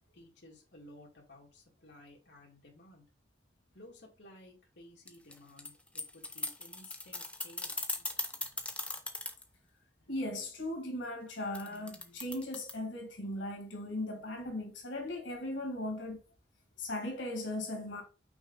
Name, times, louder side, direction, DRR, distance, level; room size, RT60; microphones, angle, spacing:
voice 1, 0.1-3.1 3.7-8.0, left 1 dB, 65° left, 2.1 m, -56 dB
sound 1, 5.1-9.4 11.5-12.7, left 2 dB, 5° left, 0.8 m, -38 dB
voice 2, 10.1-16.2 16.8-18.0, left 1 dB, 85° left, 2.3 m, -38 dB
6.0 x 4.7 x 4.0 m
head